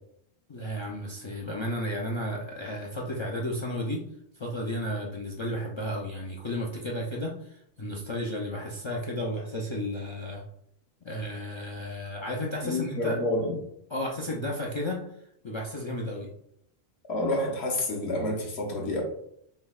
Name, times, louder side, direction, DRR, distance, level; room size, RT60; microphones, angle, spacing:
voice 1, 0.5-4.0 4.4-10.4 11.0-13.2 13.9-15.0 15.4-16.3, left 1 dB, 50° left, -2 dB, 0.3 m, -33 dB
voice 2, 12.6-13.5 17.1-19.0, left 1 dB, 80° left, -1 dB, 1.2 m, -28 dB
5.4 x 2.0 x 2.3 m, 0.73 s
omnidirectional pair, 1.1 m